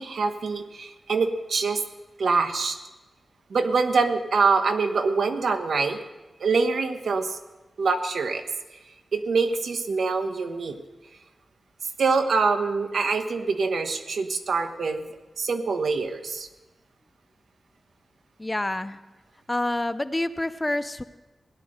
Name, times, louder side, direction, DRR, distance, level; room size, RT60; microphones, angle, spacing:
voice 1, 0.0-1.8 2.2-2.8 3.5-6.0 6.4-7.4 7.8-8.4 9.1-10.8 12.0-15.0 15.4-16.5, right 4 dB, 70° right, 7 dB, 1.2 m, -24 dB
voice 2, 18.4-19.0 19.5-21.0, left 1 dB, 15° left, 12 dB, 0.5 m, -27 dB
16.5 x 11.0 x 6.4 m, 1.1 s
wide cardioid pair, 130°, 0 cm